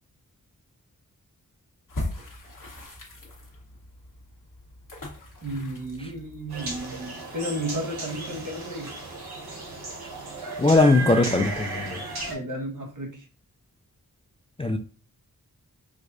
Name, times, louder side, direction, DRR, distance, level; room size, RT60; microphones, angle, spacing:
sound 1, 1.9-7.0, left 1 dB, 60° left, 1.2 m, -39 dB
voice 1, 5.4-9.0 12.3-13.3, right 1 dB, 55° right, 1.2 m, -33 dB
sound 2, 6.5-12.4, right 3 dB, 90° right, 1.0 m, -35 dB
voice 2, 10.6-12.0 14.6-14.8, left 2 dB, 15° left, 0.3 m, -20 dB
4.8 x 2.1 x 2.5 m
wide cardioid pair, 55°, 37 cm